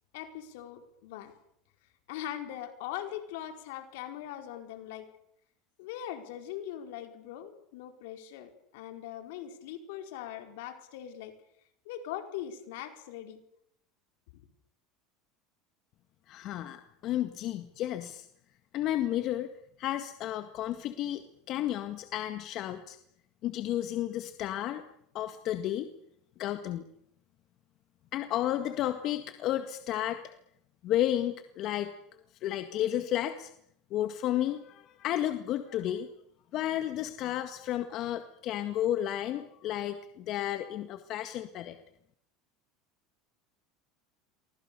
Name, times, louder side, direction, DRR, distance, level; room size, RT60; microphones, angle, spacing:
voice 1, 0.1-1.3 2.1-5.1 5.8-11.3 11.8-13.4 14.3-14.4, left 11 dB, 75° left, 6 dB, 4.5 m, -41 dB
voice 2, 16.3-18.3 18.7-19.5 19.8-21.2 21.5-23.0 23.4-24.9 25.1-25.9 26.4-26.8 28.1-30.2 30.8-31.9 32.4-33.5 33.9-36.1 36.5-41.8, left 12 dB, 50° left, 8 dB, 1.8 m, -32 dB
30.0 x 24.0 x 6.9 m, 0.74 s
supercardioid pair, 115°, 0 cm